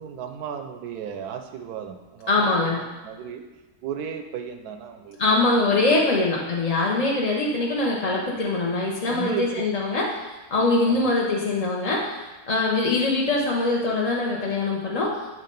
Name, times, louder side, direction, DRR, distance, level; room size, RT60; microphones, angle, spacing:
voice 1, 0.0-3.4 3.8-5.2 9.1-9.5 9.9-10.0 10.9-11.0, right 7 dB, 80° right, 7 dB, 1.1 m, -34 dB
voice 2, 2.3-2.8 5.2-10.1 10.5-12.2 12.5-15.2, left 2 dB, 40° left, -4 dB, 0.5 m, -23 dB
8.4 x 3.2 x 5.2 m, 1.1 s
omnidirectional pair, 1.7 m